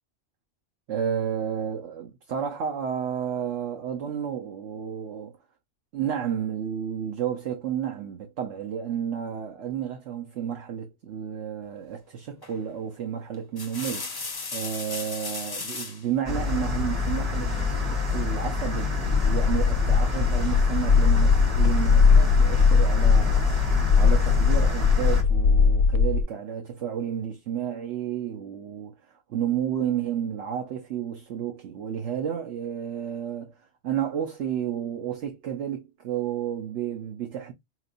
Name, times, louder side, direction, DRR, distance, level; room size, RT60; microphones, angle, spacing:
voice 1, 0.9-5.4 5.9-14.1 14.5-28.9 29.3-33.6 33.8-37.5, right 9 dB, 70° right, 1.0 m, -31 dB
sound 1, 12.4-12.7 13.3-16.0 17.5-18.2, left 4 dB, 25° left, 0.5 m, -36 dB
sound 2, 16.2-25.2, left 4 dB, 30° right, 1.3 m, -27 dB
sound 3, 19.0-26.2, left 5 dB, 85° left, 0.9 m, -20 dB
4.4 x 3.0 x 2.5 m
omnidirectional pair, 1.3 m